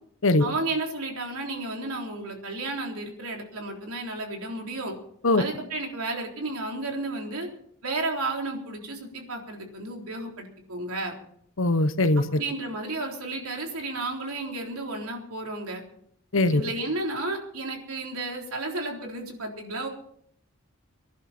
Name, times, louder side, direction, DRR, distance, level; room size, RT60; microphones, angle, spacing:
voice 1, 0.4-4.9 5.4-7.5 7.8-11.1 12.4-15.8 16.5-19.9, right 2 dB, 85° right, 1 dB, 3.8 m, -32 dB
voice 2, 11.6-12.4 16.3-16.7, left 2 dB, 65° left, 12 dB, 1.0 m, -21 dB
25.0 x 11.0 x 4.4 m, 0.66 s
head